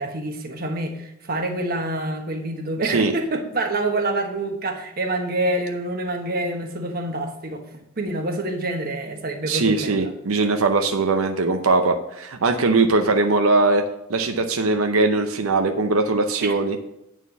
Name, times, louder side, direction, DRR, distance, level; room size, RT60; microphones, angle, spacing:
voice 1, 0.0-7.7 8.0-10.1 16.4-16.6, right 2 dB, 45° right, 4 dB, 1.2 m, -27 dB
voice 2, 9.4-13.8 14.1-16.8, right 3 dB, 85° right, 5 dB, 0.7 m, -20 dB
9.3 x 4.5 x 6.9 m, 0.83 s
head